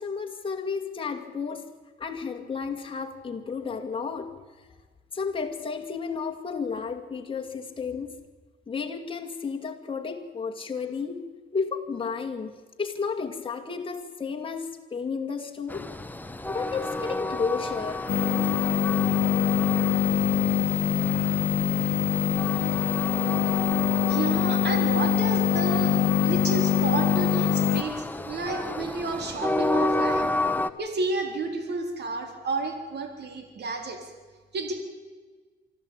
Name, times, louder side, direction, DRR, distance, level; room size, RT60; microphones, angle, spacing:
voice 1, 0.0-1.7 2.0-4.3 5.1-8.1 8.7-11.3 11.5-12.5 12.8-15.9 16.5-18.5, left 5 dB, 25° left, 1 dB, 2.2 m, -32 dB
Train, 15.7-30.7, left 2 dB, 10° left, 1.1 m, -32 dB
sound 1, 18.1-27.8, left 9 dB, 45° left, 0.8 m, -24 dB
voice 2, 24.1-30.3 30.8-34.0 34.5-34.7, right 3 dB, 55° right, 5 dB, 4.0 m, -31 dB
24.5 x 13.5 x 8.9 m, 1.4 s
cardioid pair, 90°, 20 cm